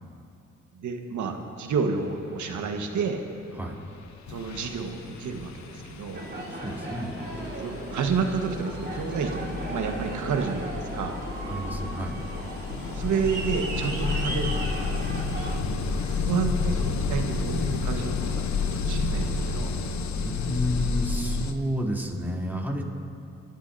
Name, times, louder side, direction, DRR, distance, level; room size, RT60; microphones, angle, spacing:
voice 1, 0.7-3.2 4.3-6.2 7.6-11.2 12.9-15.0 15.9-19.7, right 5 dB, 70° right, 4 dB, 1.5 m, -30 dB
sound 1, 3.7-3.9 4.3-21.5, left 4 dB, 65° left, 1.0 m, -31 dB
Aircraft, 6.1-15.6, right 2 dB, 35° right, 3.2 m, -36 dB
voice 2, 6.5-7.1 11.5-12.2 20.2-22.8, equal, 5° right, -3 dB, 3.3 m, -30 dB
25.5 x 12.0 x 2.8 m, 2.5 s
supercardioid pair, 45°, 31 cm